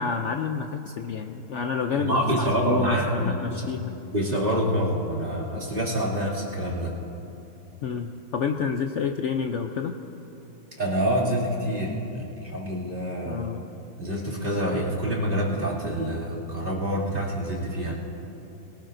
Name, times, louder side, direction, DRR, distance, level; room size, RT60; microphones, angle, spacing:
voice 1, 0.0-4.0 7.8-10.0 13.2-13.7, left 6 dB, 80° left, 5 dB, 0.6 m, -29 dB
voice 2, 2.0-3.6 4.1-6.9 10.8-13.4 14.0-17.9, equal, 30° right, -6 dB, 2.7 m, -26 dB
22.5 x 18.0 x 2.6 m, 2.9 s
omnidirectional pair, 1.9 m